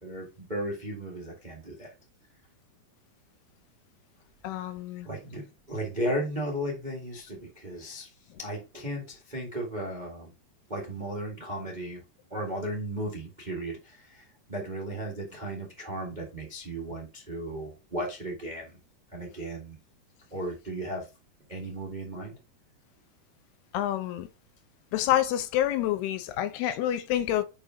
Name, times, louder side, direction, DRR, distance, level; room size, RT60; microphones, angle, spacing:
voice 1, 0.0-1.9 5.0-10.3 10.7-12.0 12.3-18.8 19.1-19.8 20.3-21.1 21.5-22.3, right 1 dB, 35° right, 0.6 m, -35 dB
voice 2, 4.4-5.1 23.7-24.3 24.9-27.4, left 12 dB, 80° left, 2.7 m, -28 dB
6.4 x 5.4 x 3.6 m
omnidirectional pair, 4.7 m